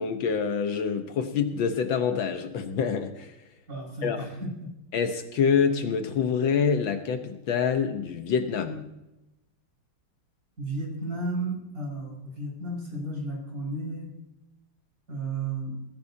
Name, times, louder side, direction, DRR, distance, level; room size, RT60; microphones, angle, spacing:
voice 1, 0.0-3.3 4.0-4.2 4.9-8.9, left 6 dB, 70° left, 7 dB, 1.7 m, -26 dB
voice 2, 3.7-4.7 10.6-14.1 15.1-15.7, right 2 dB, 40° right, -2 dB, 5.9 m, -33 dB
20.5 x 15.0 x 2.8 m, 0.92 s
omnidirectional pair, 2.3 m